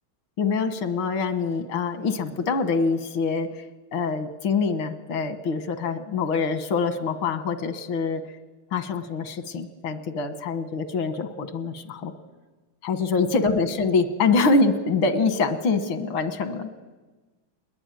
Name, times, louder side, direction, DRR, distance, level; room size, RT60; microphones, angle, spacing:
voice 1, 0.4-3.6 3.9-8.2 8.7-12.1 12.8-16.7, left 4 dB, 90° left, 10 dB, 2.2 m, -25 dB
21.0 x 21.0 x 9.1 m, 1.3 s
omnidirectional pair, 2.2 m